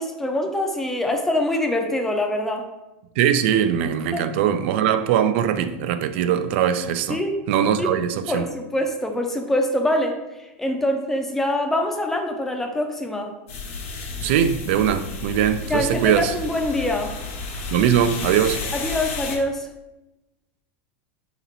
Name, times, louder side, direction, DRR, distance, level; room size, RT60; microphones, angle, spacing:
voice 1, 0.0-2.7 4.1-4.3 7.1-7.4 7.8-7.9 8.3-13.3 15.7-17.2 18.7-19.7, left 1 dB, 5° left, 0.5 m, -24 dB
voice 2, 3.2-7.2 7.5-8.5 14.2-16.3 17.7-18.6, right 9 dB, 65° right, 0.4 m, -21 dB
sound 1, 13.5-19.4, left 4 dB, 80° left, 1.0 m, -32 dB
4.0 x 2.9 x 4.0 m
supercardioid pair, 145°, 7 cm